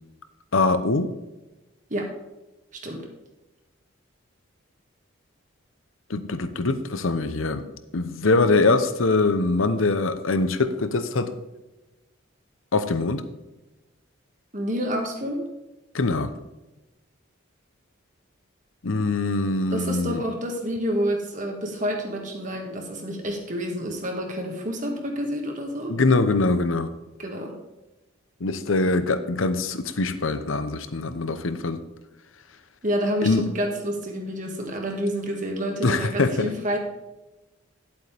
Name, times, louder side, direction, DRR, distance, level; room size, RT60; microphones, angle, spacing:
voice 1, 0.5-1.1 6.1-7.6 7.9-11.3 12.7-13.2 15.9-16.3 18.8-20.2 25.9-26.9 28.4-31.8 33.2-33.4 35.8-36.5, left 3 dB, 75° left, 11 dB, 0.9 m, -23 dB
voice 2, 2.7-3.1 14.5-15.5 19.7-26.0 27.2-27.6 32.8-36.8, equal, 40° right, 2 dB, 1.8 m, -28 dB
11.0 x 8.1 x 3.5 m, 1.0 s
head